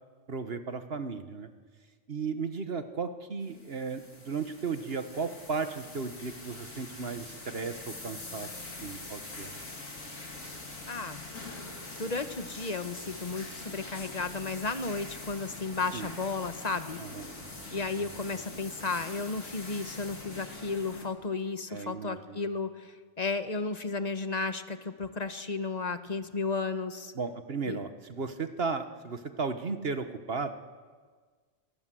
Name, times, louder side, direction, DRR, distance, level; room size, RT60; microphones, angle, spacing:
voice 1, 0.3-1.5 2.1-8.5 8.8-9.6 15.9-16.1 17.0-17.3 21.7-22.5 27.1-30.5, right 4 dB, 50° right, 9 dB, 1.5 m, -35 dB
sound 1, 3.4-21.1, left 2 dB, 90° left, 4.0 m, -44 dB
voice 2, 10.9-11.2 12.0-17.0 17.7-27.1 27.7-27.8, left 4 dB, 35° left, 9 dB, 1.3 m, -33 dB
28.0 x 22.5 x 7.8 m, 1.6 s
omnidirectional pair, 1.3 m